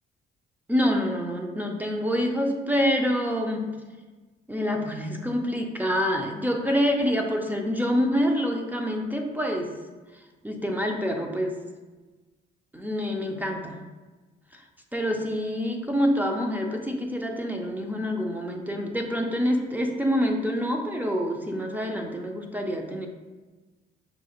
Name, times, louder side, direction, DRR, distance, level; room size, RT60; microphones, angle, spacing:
voice 1, 0.7-3.7 4.5-9.7 10.4-11.6 12.7-13.8 14.5-14.6 14.9-23.1, equal, 10° right, 2 dB, 0.4 m, -26 dB
5.6 x 2.4 x 2.9 m, 1.3 s
cardioid pair, 90°, 20 cm